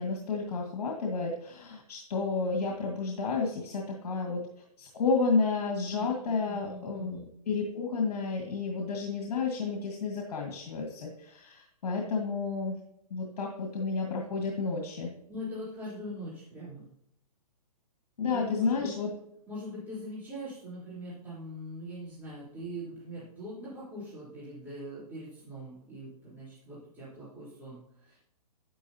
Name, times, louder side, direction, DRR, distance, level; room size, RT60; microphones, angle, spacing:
voice 1, 0.0-4.4 4.8-7.2 7.5-12.8 13.1-15.1 18.2-19.1, left 4 dB, 70° left, 0 dB, 1.9 m, -31 dB
voice 2, 5.9-7.3 15.3-16.9 18.3-18.9 19.5-28.2, equal, 10° right, -11 dB, 3.6 m, -42 dB
9.9 x 9.8 x 2.8 m, 0.75 s
hypercardioid pair, 150°, 20 cm